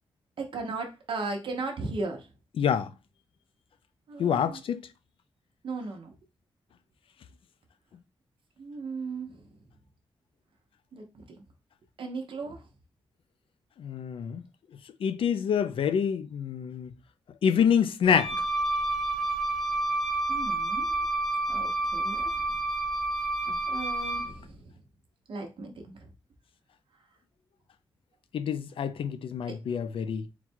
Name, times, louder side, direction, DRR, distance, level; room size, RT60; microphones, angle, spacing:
voice 1, 0.4-2.2 4.1-4.6 5.6-6.1 8.6-9.3 10.9-11.4 12.0-12.6 20.3-21.0 21.5-22.4 23.7-24.6 25.3-25.9 29.5-29.6, right 3 dB, 65° right, 0.9 m, -36 dB
voice 2, 2.6-2.9 4.2-4.8 13.8-14.4 15.0-16.9 17.4-18.4 28.3-30.3, left 7 dB, 75° left, 0.4 m, -26 dB
Wind instrument woodwind instrument, 18.0-24.4, right 2 dB, 5° left, 0.7 m, -29 dB
3.9 x 2.3 x 4.4 m
wide cardioid pair, 100°, 9 cm